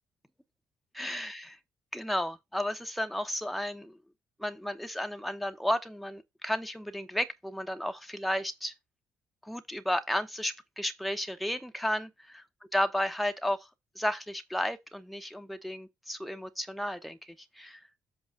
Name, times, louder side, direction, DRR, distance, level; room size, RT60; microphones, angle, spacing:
voice 1, 1.0-1.6 1.9-4.0 4.4-8.7 9.4-12.1 12.7-13.7 14.0-17.8, left 1 dB, ahead, 0.9 m, -33 dB
8.0 x 3.2 x 6.0 m
figure-of-eight pair, 45°, 8 cm